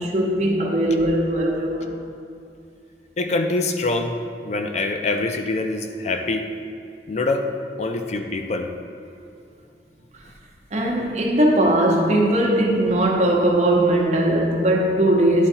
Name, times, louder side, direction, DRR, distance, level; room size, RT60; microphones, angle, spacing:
voice 1, 0.0-1.9 10.7-15.5, right 1 dB, 40° right, -1 dB, 1.0 m, -19 dB
voice 2, 3.2-4.2 4.4-6.4 7.1-7.5 7.8-8.7, left 2 dB, 40° left, 5 dB, 0.4 m, -24 dB
11.0 x 3.8 x 4.5 m, 2.5 s
head